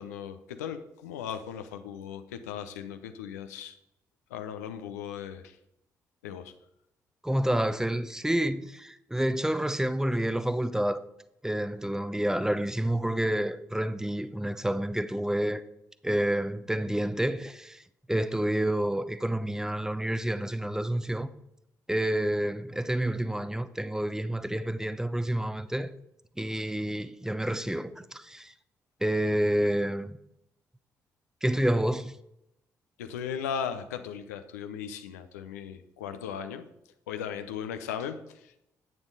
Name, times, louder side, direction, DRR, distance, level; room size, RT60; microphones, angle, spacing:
voice 1, 0.0-3.7 4.3-5.6 6.2-6.5 33.0-36.7 37.1-38.5, left 8 dB, 75° left, 0.6 m, -37 dB
voice 2, 7.2-11.0 11.4-15.6 16.0-17.8 18.1-21.3 21.9-25.9 26.4-28.5 29.0-30.2 31.4-32.1, right 1 dB, 5° right, 0.8 m, -29 dB
10.5 x 8.9 x 4.0 m
figure-of-eight pair, 40°, 9 cm